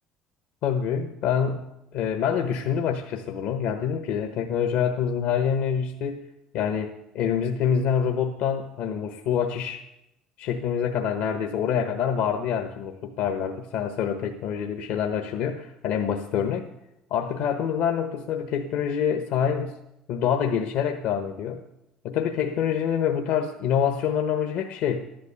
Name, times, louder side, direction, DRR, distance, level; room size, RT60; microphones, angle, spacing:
voice 1, 0.6-1.6 1.9-6.2 6.5-9.8 10.4-16.7 17.1-19.8 20.1-21.6 22.0-25.1, left 8 dB, 70° left, 5 dB, 1.2 m, -26 dB
13.5 x 11.5 x 7.1 m, 0.88 s
hypercardioid pair, 70°, 3 cm